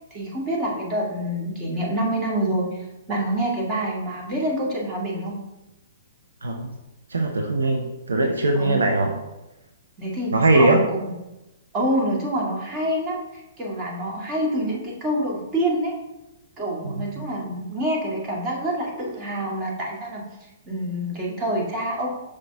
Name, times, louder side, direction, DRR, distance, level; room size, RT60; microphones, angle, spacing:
voice 1, 0.1-2.8 3.1-5.4 8.5-8.8 10.0-11.1 11.7-15.9 16.6-20.3 20.7-22.1, right 1 dB, 25° right, -3 dB, 2.0 m, -26 dB
voice 2, 6.4-6.7 7.1-9.1 10.3-10.8 16.8-17.1, right 2 dB, 75° right, 2 dB, 0.9 m, -20 dB
6.6 x 5.9 x 3.6 m, 0.96 s
figure-of-eight pair, 115°, 0 cm